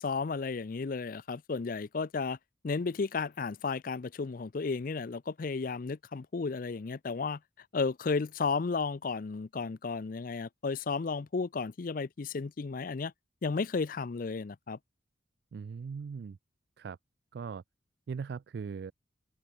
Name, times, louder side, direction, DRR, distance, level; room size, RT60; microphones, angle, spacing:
voice 1, 0.0-2.4 2.6-7.4 7.7-13.1 13.4-14.8, left 4 dB, 45° left, 0.5 m, -33 dB
voice 2, 15.5-16.4 16.8-17.0 17.3-17.6 18.1-18.9, right 5 dB, 55° right, 0.3 m, -39 dB
head